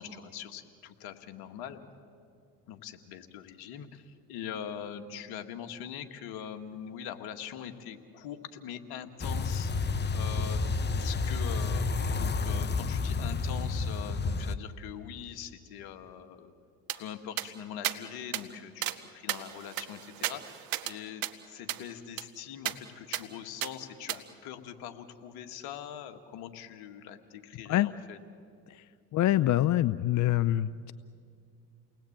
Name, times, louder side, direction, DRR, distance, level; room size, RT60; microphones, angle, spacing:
voice 1, 0.0-1.8 2.7-11.9 12.2-16.5 16.9-28.2, left 9 dB, 75° left, 7 dB, 2.0 m, -43 dB
sound 1, 9.2-14.6, left 4 dB, 25° left, 1.0 m, -30 dB
sound 2, 16.9-17.0 17.4-17.5 17.8-18.0 18.3-18.4 18.8-19.0 19.3-20.9 21.2-21.3 21.7-21.8 22.2-22.3 22.7-22.8 23.1-23.2 23.6-23.7 24.1-24.2, right 13 dB, 65° right, 1.5 m, -34 dB
voice 2, 29.1-30.9, left 14 dB, 50° left, 15 dB, 0.6 m, -25 dB
29.5 x 19.5 x 8.8 m, 2.3 s
supercardioid pair, 75°, 38 cm